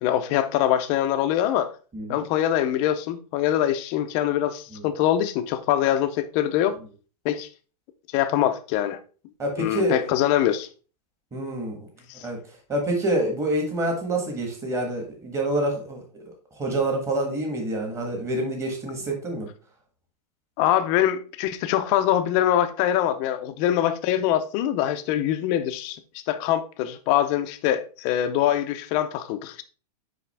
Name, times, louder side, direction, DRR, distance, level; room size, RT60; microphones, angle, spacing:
voice 1, 0.0-1.7 2.1-6.8 7.2-7.5 8.1-9.0 9.6-10.7 12.1-12.3 20.6-26.0 26.3-29.6, left 11 dB, 25° left, 0.5 m, -23 dB
voice 2, 9.4-10.1 11.3-11.8 12.2-12.4 12.7-16.3 16.6-19.5, right 1 dB, 15° right, 1.3 m, -27 dB
5.9 x 5.0 x 3.3 m
supercardioid pair, 165°, 21 cm